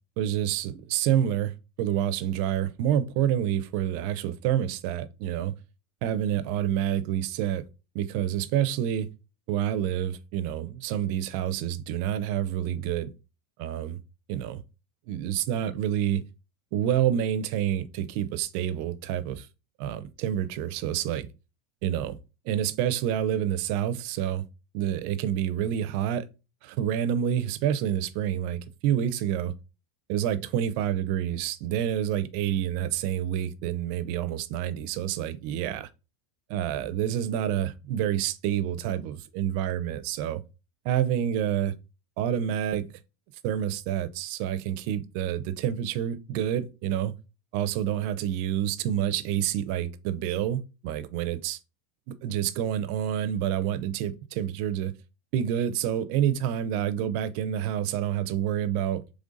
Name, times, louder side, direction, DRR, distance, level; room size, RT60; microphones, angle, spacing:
voice 1, 0.2-5.5 6.0-7.6 7.9-9.1 9.5-13.1 13.6-14.0 14.3-14.6 15.1-16.2 16.7-19.5 19.8-21.3 21.8-22.2 22.4-24.4 24.7-26.3 26.6-29.5 30.1-35.9 36.5-40.4 40.8-41.7 42.2-42.8 43.4-47.1 47.5-51.6 52.1-54.9 55.3-59.0, right 10 dB, 50° right, 0.5 m, -28 dB
3.8 x 3.3 x 3.9 m
supercardioid pair, 160°, 0 cm